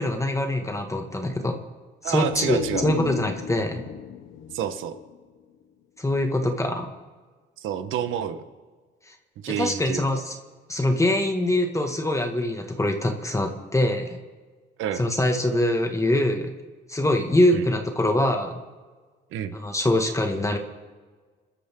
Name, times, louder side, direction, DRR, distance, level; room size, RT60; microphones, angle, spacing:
voice 1, 0.0-1.6 2.0-3.8 6.0-6.9 9.1-9.2 9.6-10.4 10.7-14.2 15.0-16.5 16.9-18.6 19.5-20.6, left 1 dB, 15° left, 4 dB, 2.0 m, -24 dB
voice 2, 2.0-2.9 4.5-4.9 7.6-8.4 9.4-10.2 14.8-15.0 17.5-17.7 19.3-19.6, right 9 dB, 90° right, 9 dB, 1.4 m, -29 dB
sound 1, 2.1-5.8 6.2-6.3, left 9 dB, 80° left, 1.2 m, -35 dB
28.0 x 13.0 x 3.9 m, 1.4 s
cardioid pair, 90°, 20 cm